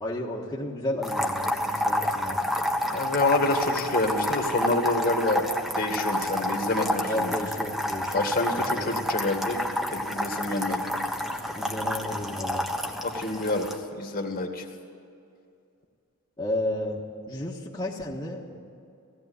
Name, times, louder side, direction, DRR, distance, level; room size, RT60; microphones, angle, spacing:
voice 1, 0.0-2.4 7.1-8.1 8.5-9.0 11.5-12.7 16.4-18.6, left 1 dB, 20° left, -5 dB, 1.6 m, -32 dB
sound 1, 1.0-13.8, equal, ahead, 1.3 m, -29 dB
voice 2, 2.9-5.4 5.7-7.3 8.1-9.6 9.9-10.9 13.0-14.7, left 2 dB, 40° left, 4 dB, 2.0 m, -27 dB
17.0 x 16.0 x 9.7 m, 2.5 s
head